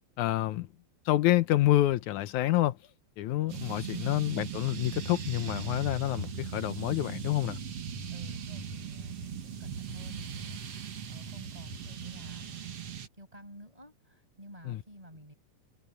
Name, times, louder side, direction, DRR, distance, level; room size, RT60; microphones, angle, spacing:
voice 1, 0.2-0.7 1.1-2.8 3.2-7.6 14.7-14.8, left 15 dB, 80° left, 2.2 m, -28 dB
sound 1, 3.5-13.1, right 6 dB, 55° right, 2.7 m, -39 dB
voice 2, 3.9-4.2 8.1-12.6 13.2-15.3, equal, 10° right, 6.7 m, -51 dB
omnidirectional pair, 3.4 m